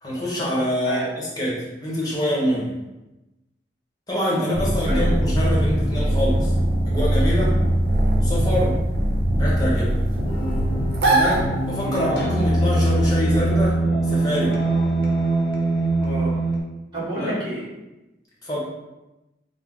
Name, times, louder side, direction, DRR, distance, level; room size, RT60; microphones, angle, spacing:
voice 1, 0.0-2.7 4.1-6.5 6.8-7.6 8.2-8.8 9.4-10.0 11.1-13.8 14.0-14.6 17.2-17.3 18.4-18.6, equal, 20° left, -6 dB, 1.0 m, -25 dB
sound 1, 4.5-12.0, right 1 dB, 85° right, 0.7 m, -21 dB
sound 2, 10.3-16.6, right 2 dB, 75° left, 0.6 m, -22 dB
voice 2, 16.0-16.4 16.9-17.7, right 1 dB, 25° right, -9 dB, 1.3 m, -30 dB
3.4 x 2.1 x 3.6 m, 1.0 s
head